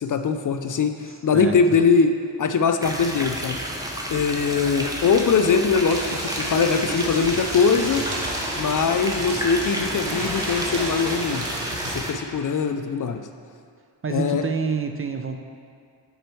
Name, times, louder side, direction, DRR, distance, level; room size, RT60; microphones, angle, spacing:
voice 1, 0.0-0.9 1.2-2.1 2.4-3.6 4.1-8.0 8.6-11.5 11.9-13.2 14.1-14.5, left 5 dB, 45° left, 7 dB, 0.4 m, -21 dB
voice 2, 1.1-1.6 14.0-15.4, right 5 dB, 30° right, 5 dB, 0.4 m, -28 dB
sound 1, 2.8-12.1, equal, 10° right, 0.8 m, -31 dB
sound 2, 5.9-12.0, right 1 dB, 90° right, 1.3 m, -32 dB
8.0 x 4.5 x 4.5 m, 2.2 s
cardioid pair, 90°, 44 cm